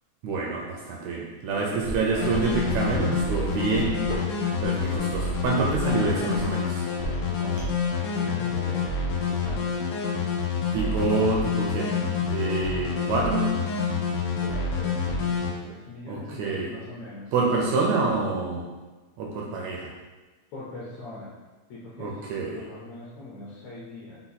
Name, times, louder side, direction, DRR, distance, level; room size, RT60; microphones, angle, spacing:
voice 1, 0.2-4.0 4.6-6.8 10.7-11.9 12.2-13.5 16.1-16.7 17.3-18.7 19.2-19.9 22.0-22.6, right 4 dB, 80° right, -2 dB, 1.6 m, -27 dB
voice 2, 1.5-2.3 5.8-6.3 7.2-9.8 14.4-17.8 20.5-21.3 21.7-22.3 22.5-24.2, left 2 dB, 70° left, -6 dB, 1.9 m, -41 dB
sound 1, 1.8-7.9, right 1 dB, 55° right, 0.6 m, -37 dB
sound 2, 2.2-15.5, left 5 dB, 90° left, 2.2 m, -27 dB
5.7 x 2.2 x 4.0 m, 1.3 s
omnidirectional pair, 3.7 m